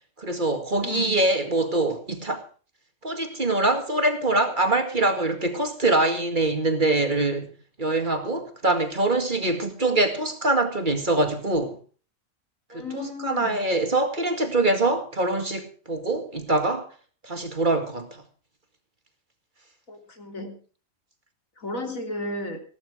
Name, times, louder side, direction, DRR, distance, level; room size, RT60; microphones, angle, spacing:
voice 1, 0.2-2.4 3.0-11.8 12.7-16.9 17.2-18.2, right 2 dB, 35° right, 2.2 m, -24 dB
voice 2, 0.8-1.3 12.7-13.6 19.9-20.6 21.6-22.6, left 2 dB, 85° left, 3.7 m, -34 dB
16.5 x 12.5 x 4.9 m
omnidirectional pair, 1.4 m